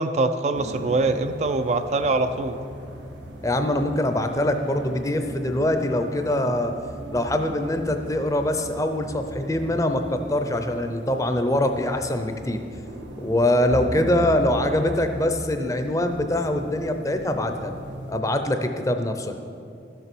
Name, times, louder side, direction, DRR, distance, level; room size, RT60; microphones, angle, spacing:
voice 1, 0.0-2.6, right 3 dB, 35° right, 9 dB, 0.4 m, -23 dB
sound 1, 0.5-18.2, equal, 90° right, 1.3 m, -38 dB
voice 2, 3.4-6.7 7.1-12.6 13.2-17.7 18.1-19.4, left 1 dB, 20° left, 6 dB, 0.6 m, -23 dB
13.0 x 6.9 x 6.1 m, 2.5 s
head